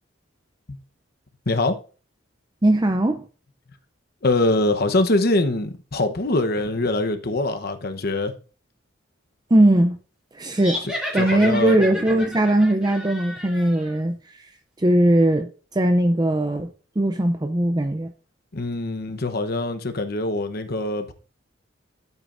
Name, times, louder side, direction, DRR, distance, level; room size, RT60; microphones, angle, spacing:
voice 1, 1.5-1.8 4.2-8.3 11.2-11.8 18.5-21.1, left 2 dB, 50° left, 1.0 m, -23 dB
voice 2, 2.6-3.3 9.5-10.0 10.3-10.8 11.1-14.5 14.8-16.7 17.0-18.1, right 1 dB, 20° right, 0.5 m, -19 dB
sound 1, 10.5-14.0, equal, 5° right, 2.5 m, -32 dB
12.0 x 8.2 x 2.6 m
head